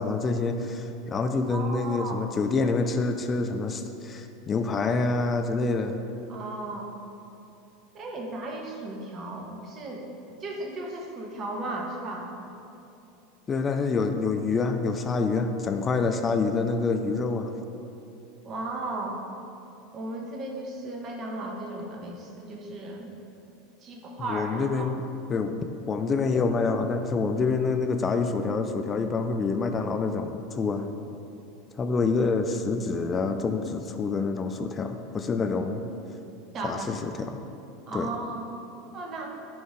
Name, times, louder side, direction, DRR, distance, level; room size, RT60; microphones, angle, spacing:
voice 1, 0.0-6.0 13.5-17.5 24.2-25.0 25.3-25.6 25.9-30.9 31.8-35.8 36.6-37.4 37.9-38.1, left 4 dB, 25° left, 6 dB, 0.4 m, -27 dB
voice 2, 1.5-2.2 6.3-6.9 7.9-12.3 18.4-19.2 19.9-23.1 23.8-24.9 36.5-36.9 37.9-38.5 38.9-39.3, right 2 dB, 35° right, 0 dB, 1.2 m, -35 dB
10.0 x 5.2 x 3.7 m, 2.7 s
figure-of-eight pair, 80°, 0 cm